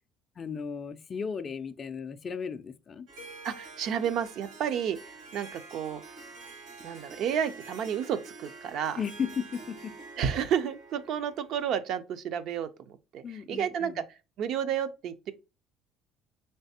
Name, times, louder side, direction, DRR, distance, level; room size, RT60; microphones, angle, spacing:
voice 1, 0.4-3.1 9.0-9.9 13.2-14.0, left 6 dB, 30° left, 0.3 m, -35 dB
Harp, 3.1-11.8, right 3 dB, 80° right, 1.8 m, -47 dB
voice 2, 3.4-6.0 6.8-9.0 10.2-14.0 14.4-15.3, right 8 dB, 60° right, 0.4 m, -31 dB
3.9 x 3.3 x 2.7 m
cardioid pair, 135°, 0 cm